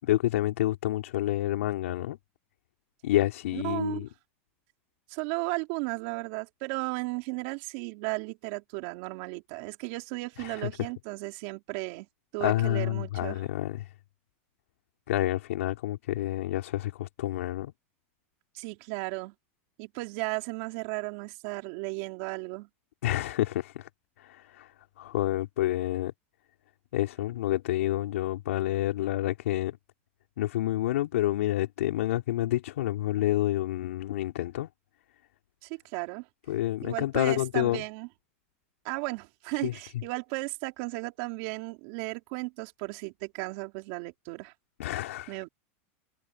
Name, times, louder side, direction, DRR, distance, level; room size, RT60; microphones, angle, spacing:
voice 1, 0.0-2.2 3.0-4.1 10.4-10.7 12.4-13.9 15.1-17.7 23.0-23.9 24.2-24.7 25.0-26.1 26.9-29.8 30.4-34.7 36.5-37.8 39.6-39.7 44.8-45.4, left 14 dB, 85° left, 4.9 m, -28 dB
voice 2, 3.5-4.0 5.1-12.1 12.3-13.4 18.5-19.3 19.8-22.7 35.6-36.3 36.8-38.1 38.8-44.5 45.3-45.5, right 26 dB, 55° right, 3.9 m, -35 dB
supercardioid pair, 150°, 7 cm